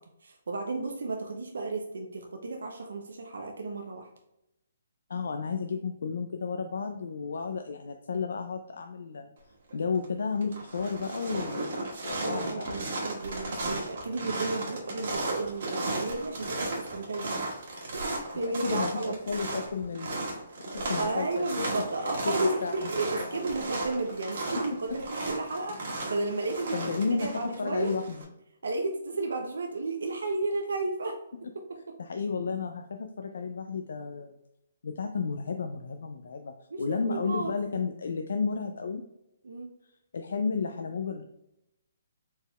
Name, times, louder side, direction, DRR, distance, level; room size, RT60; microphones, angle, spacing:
voice 1, 0.2-4.1 12.2-17.4 17.9-19.2 21.0-26.8 27.0-27.9 28.6-31.1 36.7-37.5 39.4-39.7, right 2 dB, 85° right, 2 dB, 0.5 m, -33 dB
voice 2, 5.1-9.3 9.7-11.8 12.0-12.9 18.6-20.4 20.7-21.7 22.0-22.1 22.4-22.9 23.2-23.4 26.7-27.3 27.6-28.3 32.0-34.3 34.8-39.0 40.1-41.3, left 5 dB, 75° left, 5 dB, 0.3 m, -32 dB
sound 1, 9.7-10.0 10.4-28.2, right 2 dB, 60° right, 1.3 m, -35 dB
4.3 x 3.5 x 2.3 m, 0.87 s
hypercardioid pair, 165°, 0 cm